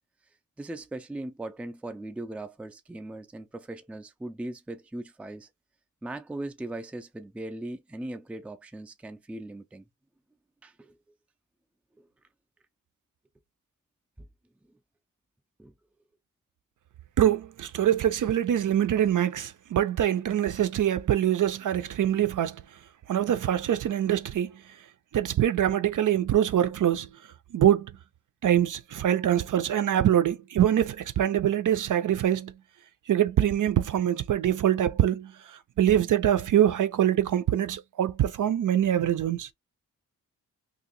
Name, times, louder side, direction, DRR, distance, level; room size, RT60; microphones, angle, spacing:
voice 1, 0.6-5.5 6.0-9.9 10.6-11.0 12.0-12.1 14.2-14.3 15.6-15.7, right 1 dB, 5° right, 0.4 m, -39 dB
voice 2, 17.2-22.6 23.1-24.5 25.1-27.1 27.5-27.9 28.4-32.5 33.1-39.5, right 11 dB, 65° right, 0.5 m, -24 dB
2.9 x 2.5 x 3.8 m
wide cardioid pair, 165°, 34 cm